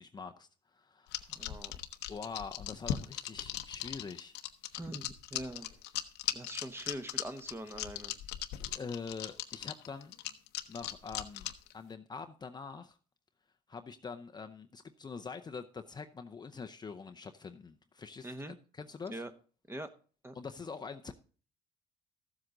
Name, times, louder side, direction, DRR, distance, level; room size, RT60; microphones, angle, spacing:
voice 1, 0.0-1.5 2.1-4.3 8.6-10.1 10.7-13.0 13.7-18.3 18.7-19.1 20.3-21.1, left 5 dB, 25° left, 0.6 m, -44 dB
sound 1, 1.1-11.7, left 13 dB, 85° left, 0.9 m, -38 dB
voice 2, 1.3-1.8 4.8-5.7 6.3-8.2 18.2-18.6 19.1-19.3 19.7-19.9 20.2-20.4, right 1 dB, 15° right, 1.1 m, -43 dB
14.0 x 7.8 x 3.9 m
cardioid pair, 110°, 17 cm